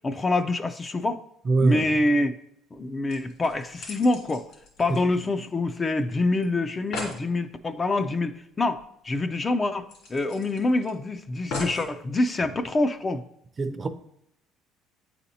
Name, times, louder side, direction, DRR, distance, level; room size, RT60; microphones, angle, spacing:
voice 1, 0.0-1.2 1.6-2.3 2.7-4.4 4.8-8.3 8.6-8.8 9.0-13.2, left 2 dB, 25° left, 0.4 m, -25 dB
voice 2, 1.4-1.9 13.6-13.9, right 3 dB, 30° right, 0.6 m, -23 dB
sound 1, 2.8-2.9 3.1-5.7 6.0-6.1 6.4-6.5 6.7-7.2 8.7-8.8 9.2-9.3 9.9-10.9 11.5-11.9 12.6-12.7, left 2 dB, 70° left, 2.5 m, -38 dB
9.1 x 4.2 x 2.8 m
cardioid pair, 115°, 0 cm